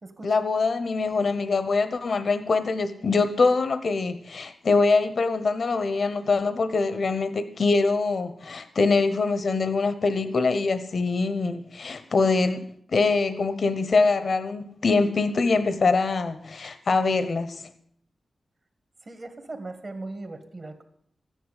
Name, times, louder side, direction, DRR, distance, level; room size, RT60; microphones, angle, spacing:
voice 1, 0.2-12.6 12.9-17.6, left 3 dB, 60° left, 12 dB, 1.0 m, -24 dB
voice 2, 19.0-20.8, right 2 dB, 45° right, 8 dB, 2.0 m, -38 dB
13.5 x 10.0 x 8.2 m, 0.65 s
wide cardioid pair, 85°, 0 cm